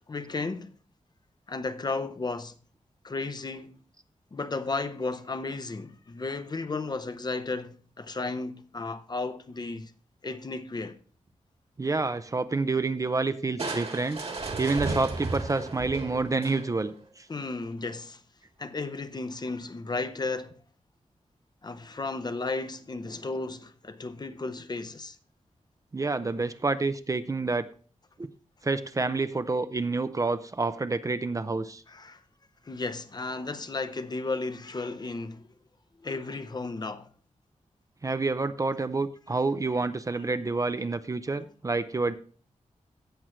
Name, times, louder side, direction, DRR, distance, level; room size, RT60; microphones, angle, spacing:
voice 1, 0.1-0.7 1.5-2.6 3.0-3.8 4.3-9.9 10.2-11.0 17.3-18.2 18.6-20.6 21.6-25.2 31.9-32.2 32.6-35.5 36.0-37.1 41.3-41.4, left 3 dB, 35° left, 0.7 m, -34 dB
voice 2, 11.8-14.2 14.6-17.3 25.9-27.7 28.2-28.3 28.6-31.8 38.0-42.2, right 3 dB, 25° right, 0.5 m, -28 dB
Crushing, 13.6-17.0, right 3 dB, 50° right, 1.7 m, -34 dB
16.0 x 6.2 x 3.1 m
wide cardioid pair, 155°, 13 cm